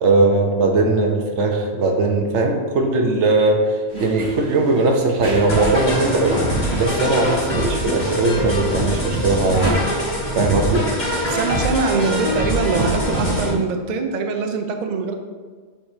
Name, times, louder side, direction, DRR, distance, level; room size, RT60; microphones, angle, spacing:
voice 1, 0.0-6.4 6.7-9.7 10.3-10.9, right 2 dB, 85° right, 3 dB, 1.1 m, -19 dB
sound 1, 3.9-9.7, right 2 dB, 20° right, 1.3 m, -34 dB
sound 2, 5.5-13.5, equal, 40° left, 1.5 m, -23 dB
voice 2, 11.2-15.1, right 4 dB, 50° right, 5 dB, 0.6 m, -23 dB
7.3 x 5.0 x 2.7 m, 1.5 s
omnidirectional pair, 1.2 m